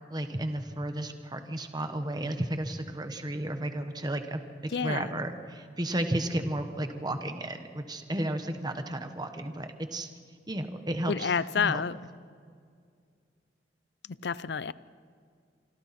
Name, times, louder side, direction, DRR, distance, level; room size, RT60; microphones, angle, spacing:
voice 1, 0.1-10.1 10.5-11.3 11.6-11.8, right 1 dB, 25° right, 7 dB, 1.2 m, -33 dB
voice 2, 4.7-5.2 11.1-12.0 14.1-14.7, left 6 dB, 65° left, 17 dB, 0.5 m, -29 dB
25.5 x 25.5 x 4.3 m, 2.2 s
head